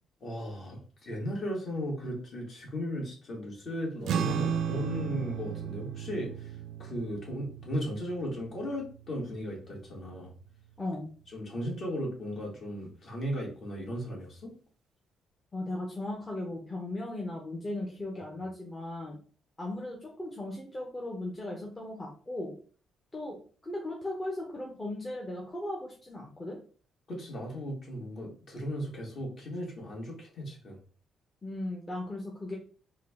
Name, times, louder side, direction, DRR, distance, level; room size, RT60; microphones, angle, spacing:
voice 1, 0.2-6.5 6.8-10.3 11.3-14.5 27.1-30.8, equal, 50° left, -2 dB, 1.7 m, -36 dB
sound 1, 4.0-10.7, right 8 dB, 75° right, 0.3 m, -35 dB
voice 2, 10.8-11.1 15.5-19.2 19.6-22.5 23.1-23.4 23.6-26.6 31.4-32.6, left 1 dB, 25° left, -2 dB, 0.8 m, -37 dB
3.7 x 2.3 x 3.5 m, 0.40 s
cardioid pair, 90°, 0 cm